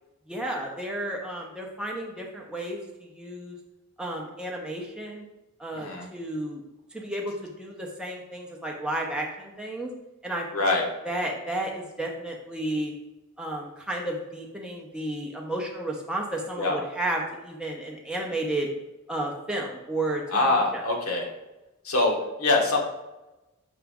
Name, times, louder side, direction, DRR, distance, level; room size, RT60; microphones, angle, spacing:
voice 1, 0.3-3.6 4.0-5.2 5.6-6.6 6.9-9.9 10.2-10.8 11.0-12.9 13.4-18.7 19.1-20.8, right 1 dB, 5° right, -1 dB, 0.6 m, -32 dB
voice 2, 5.7-6.1 10.5-10.9 16.6-16.8 20.3-21.3 21.8-22.8, left 2 dB, 80° left, 0 dB, 1.0 m, -24 dB
5.9 x 2.5 x 3.5 m, 1.0 s
head